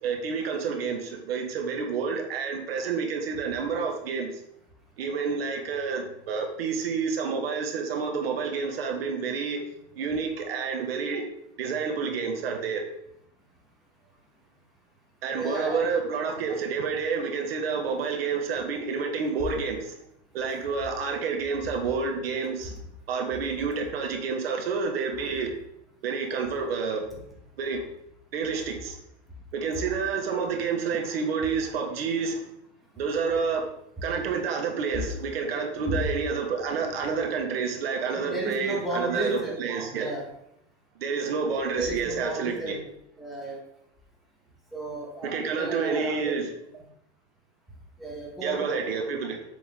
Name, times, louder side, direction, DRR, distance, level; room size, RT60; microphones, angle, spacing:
voice 1, 0.0-4.3 5.0-9.6 9.9-11.2 11.6-12.8 15.2-19.9 20.3-22.8 23.1-25.5 26.0-27.1 27.6-27.8 28.3-29.0 29.5-32.5 33.0-33.7 34.0-40.1 41.0-42.8 45.2-46.5 48.4-49.4, right 5 dB, 60° right, 2 dB, 1.4 m, -29 dB
voice 2, 15.3-15.8 20.4-20.6 27.1-27.2 34.9-35.1 35.8-36.0 38.1-39.6 39.9-40.3 41.7-42.8 43.2-43.6 44.7-46.4 48.0-48.9 49.1-49.2, right 1 dB, ahead, -4 dB, 1.8 m, -33 dB
7.8 x 3.8 x 3.8 m, 0.77 s
figure-of-eight pair, 95°, 34 cm